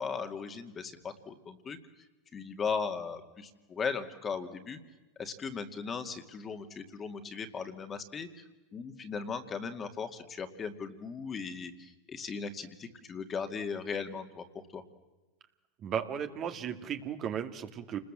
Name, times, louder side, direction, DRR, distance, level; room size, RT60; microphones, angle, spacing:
voice 1, 0.0-1.8 2.3-4.8 5.2-8.4 8.7-14.4 14.7-14.8, left 5 dB, 25° left, 7 dB, 2.3 m, -37 dB
voice 2, 15.8-18.0, right 8 dB, 40° right, 7 dB, 2.1 m, -35 dB
29.0 x 20.5 x 7.5 m, 1.2 s
hypercardioid pair, 110°, 0 cm